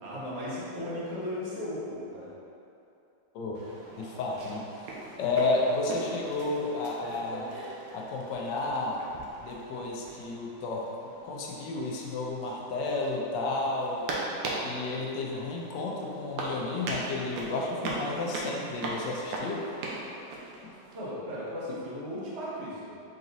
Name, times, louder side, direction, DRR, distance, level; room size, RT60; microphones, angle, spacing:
voice 1, 0.0-2.3 20.9-23.0, left 1 dB, 45° right, -7 dB, 1.0 m, -36 dB
sound 1, 3.5-21.0, right 2 dB, 90° right, 1.3 m, -40 dB
voice 2, 4.0-7.5 7.9-9.0 9.4-10.9 11.2-14.1 14.6-19.7 20.6-20.7, left 3 dB, 80° left, -2 dB, 1.2 m, -32 dB
4.0 x 3.9 x 2.7 m, 2.6 s
omnidirectional pair, 2.0 m